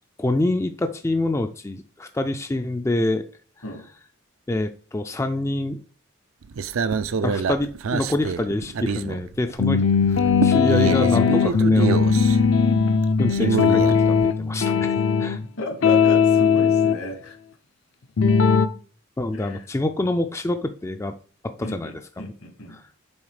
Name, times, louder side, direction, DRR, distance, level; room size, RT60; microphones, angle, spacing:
voice 1, 0.2-3.2 4.5-5.8 7.2-9.8 10.1-12.0 13.2-15.4 19.2-21.1 21.4-21.9 22.2-22.3 22.7-22.8, left 2 dB, 15° left, 7 dB, 0.3 m, -26 dB
sound 1, 6.4-9.7 10.0-14.3, right 5 dB, 75° right, 0.4 m, -27 dB
sound 2, 9.6-15.5 15.8-17.0 18.2-18.7, left 6 dB, 65° left, 0.5 m, -19 dB
voice 2, 15.6-17.4 19.3-19.6 21.6-22.8, left 1 dB, 80° left, 5 dB, 2.0 m, -34 dB
7.1 x 4.0 x 4.9 m, 0.40 s
head